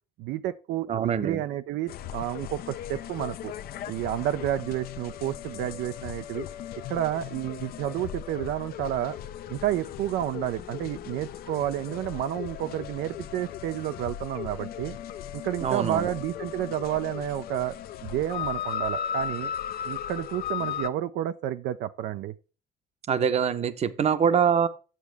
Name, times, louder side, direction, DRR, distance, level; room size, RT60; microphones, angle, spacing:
voice 1, 0.2-3.5 3.9-6.5 6.9-9.2 9.5-15.0 15.3-17.7 18.0-19.5 19.9-22.3, right 12 dB, 80° right, 0.5 m, -30 dB
voice 2, 0.9-1.4 15.6-16.1 23.1-24.7, right 7 dB, 40° right, 0.8 m, -24 dB
sound 1, 1.9-20.9, left 9 dB, 65° left, 0.6 m, -37 dB
8.5 x 7.2 x 3.4 m
cardioid pair, 110°, 17 cm